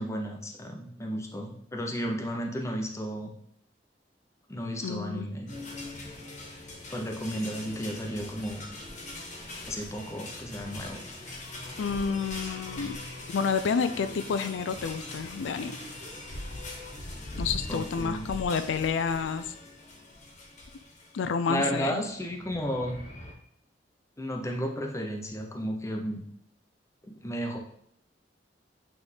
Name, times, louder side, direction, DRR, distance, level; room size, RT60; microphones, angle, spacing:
voice 1, 0.0-3.3 4.5-5.5 6.9-8.6 9.7-11.0 17.7-18.3 21.5-23.0 24.2-26.2 27.0-27.6, equal, 15° left, 2 dB, 0.7 m, -33 dB
voice 2, 4.8-5.3 11.8-13.0 13.3-15.8 17.4-19.4 21.1-22.0, left 5 dB, 85° left, 10 dB, 0.4 m, -29 dB
sound 1, 5.5-21.3 22.1-23.3, left 2 dB, 40° left, 1.3 m, -41 dB
Speech, 15.6-16.2 17.5-17.7, right 1 dB, 55° right, 1.8 m, -48 dB
8.5 x 3.5 x 3.3 m, 0.70 s
head